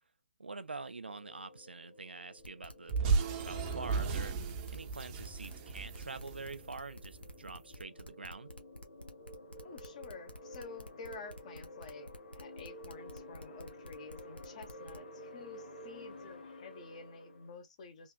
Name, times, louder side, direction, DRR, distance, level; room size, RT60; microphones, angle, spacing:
voice 1, 0.4-4.4 4.7-8.5, right 3 dB, 80° right, 0.5 m, -46 dB
sound 1, 1.0-17.6, left 1 dB, 65° left, 1.4 m, -52 dB
sound 2, 2.4-15.1, left 1 dB, 85° left, 1.0 m, -50 dB
sound 3, 2.9-7.3, right 5 dB, 25° right, 0.7 m, -34 dB
voice 2, 9.6-18.1, left 4 dB, 40° left, 1.1 m, -50 dB
3.4 x 2.5 x 2.2 m
figure-of-eight pair, 140°, 6 cm